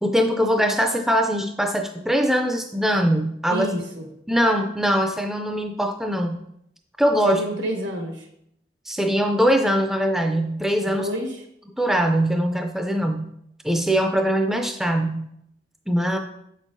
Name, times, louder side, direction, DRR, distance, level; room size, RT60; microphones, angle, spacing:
voice 1, 0.0-3.7 4.3-6.4 7.0-7.4 8.9-11.1 11.8-13.3 13.6-15.3 15.9-16.2, equal, ahead, 4 dB, 0.4 m, -22 dB
voice 2, 3.5-4.1 7.2-8.3 10.8-11.4, equal, 85° right, 1 dB, 1.5 m, -28 dB
8.2 x 6.3 x 2.7 m, 0.75 s
head